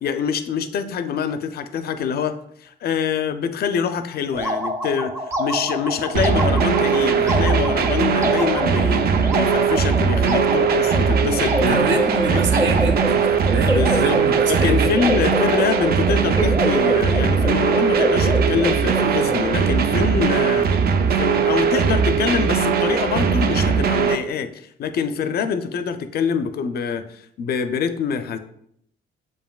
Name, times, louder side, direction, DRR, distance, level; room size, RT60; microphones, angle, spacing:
voice 1, 0.0-5.1 5.4-11.8 12.3-12.4 13.6-20.7 21.2-28.4, left 6 dB, 55° left, 10 dB, 0.4 m, -25 dB
sound 1, 4.3-19.5, right 1 dB, 15° right, 0.7 m, -26 dB
sound 2, 6.1-24.1, right 6 dB, 50° right, 0.4 m, -20 dB
voice 2, 11.6-15.0, right 3 dB, 65° right, 4 dB, 0.9 m, -26 dB
7.1 x 2.5 x 2.3 m, 0.71 s
cardioid pair, 90°, 20 cm